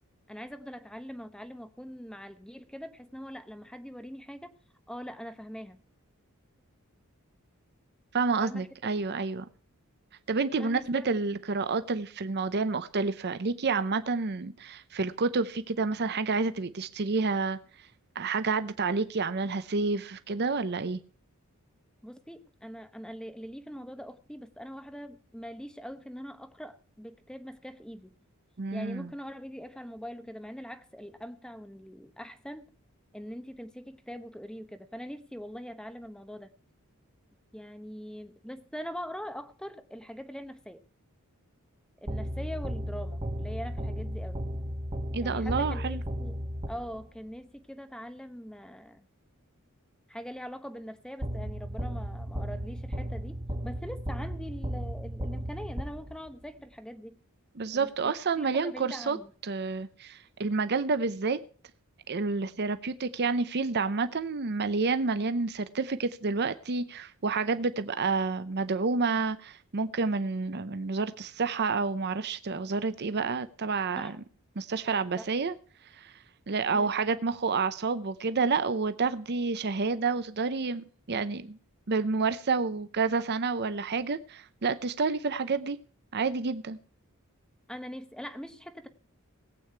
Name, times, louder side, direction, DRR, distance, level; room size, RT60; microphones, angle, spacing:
voice 1, 0.3-4.6 4.9-5.8 8.4-8.7 10.6-11.1 22.0-28.1 28.7-32.7 33.1-36.5 37.5-40.8 42.0-44.4 45.2-49.1 50.1-57.2 57.7-59.3 74.0-74.2 75.2-75.3 76.7-77.0 87.7-88.9, equal, 5° left, 0.8 m, -42 dB
voice 2, 8.1-9.5 10.3-17.6 18.2-21.0 28.6-29.1 45.1-46.0 57.6-59.2 59.4-61.4 62.1-74.2 74.6-75.6 75.9-76.1 76.5-81.6 81.9-85.8 86.1-86.8, right 4 dB, 50° right, 0.7 m, -29 dB
sound 1, 42.1-47.2 51.2-56.4, equal, 25° right, 1.3 m, -35 dB
18.0 x 8.6 x 4.5 m
head